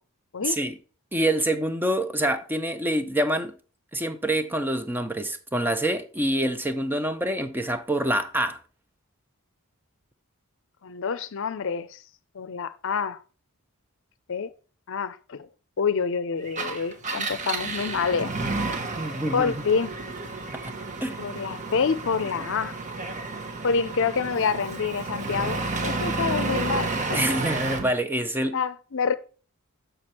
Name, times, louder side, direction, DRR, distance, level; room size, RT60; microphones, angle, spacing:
voice 1, 0.4-0.7 1.1-3.5 3.9-8.6 19.0-19.5 20.5-20.7 21.0-21.2 27.1-28.6, right 1 dB, 10° right, 0.6 m, -26 dB
voice 2, 10.8-12.0 12.3-13.2 14.3-14.5 14.9-15.5 15.8-18.3 19.3-19.9 21.2-22.8 23.6-27.2 28.5-29.1, left 5 dB, 60° left, 0.6 m, -27 dB
Engine, 16.5-27.9, right 3 dB, 35° right, 1.0 m, -31 dB
6.6 x 6.2 x 4.3 m
head